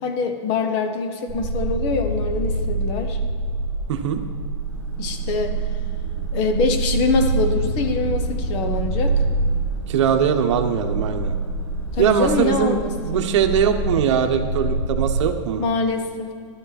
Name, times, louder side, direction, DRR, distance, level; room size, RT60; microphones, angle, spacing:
voice 1, 0.0-3.2 5.0-5.6 6.3-9.1 11.9-13.3 15.6-16.3, left 3 dB, 35° left, 6 dB, 1.2 m, -24 dB
sound 1, 1.3-15.2, right 2 dB, 5° left, 1.9 m, -26 dB
voice 2, 3.9-4.2 9.9-11.3 12.0-12.8 13.0-15.6, right 8 dB, 60° right, 6 dB, 1.2 m, -21 dB
sound 2, 4.6-13.8, equal, 55° left, 3.6 m, -43 dB
12.5 x 11.0 x 4.2 m, 2.2 s
hypercardioid pair, 155°, 17 cm